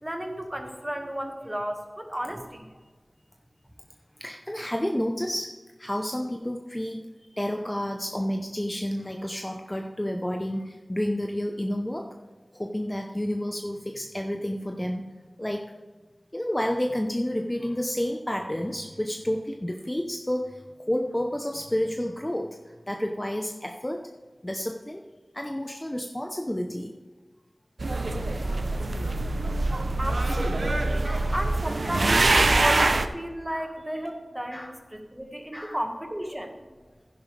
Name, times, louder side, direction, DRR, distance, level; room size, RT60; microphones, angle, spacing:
voice 1, 0.0-2.7 28.2-28.7 30.0-36.8, equal, 15° right, 3 dB, 1.6 m, -34 dB
voice 2, 4.2-12.1 12.5-15.7 16.3-24.0 24.4-25.0 25.3-26.9 30.2-30.3 31.0-31.3 31.8-32.1 33.5-33.7 34.5-34.7 35.5-35.8, equal, 15° left, 3 dB, 0.7 m, -30 dB
sound 1, 27.8-33.1, right 2 dB, 70° right, 0.6 m, -24 dB
11.5 x 10.0 x 3.3 m, 1.3 s
wide cardioid pair, 55°, 0 cm